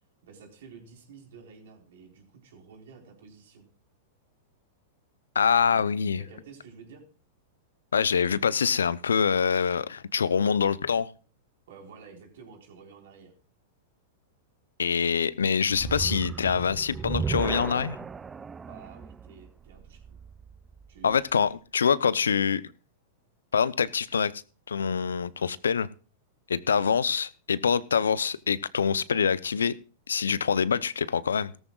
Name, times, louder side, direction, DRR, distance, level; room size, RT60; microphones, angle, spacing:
voice 1, 0.2-3.7 5.6-5.8 6.2-7.0 11.7-13.3 18.6-20.2 20.9-21.2 21.5-21.6 21.8-22.4, right 5 dB, 65° right, 4.2 m, -50 dB
voice 2, 5.3-6.2 7.9-11.1 14.8-18.0 21.0-22.6 23.5-24.3 24.7-25.9 26.5-29.7 30.1-31.5, left 6 dB, 80° left, 0.6 m, -25 dB
sound 1, 15.7-21.0, right 5 dB, 20° right, 0.5 m, -35 dB
17.5 x 13.5 x 2.4 m
hypercardioid pair, 100°, 0 cm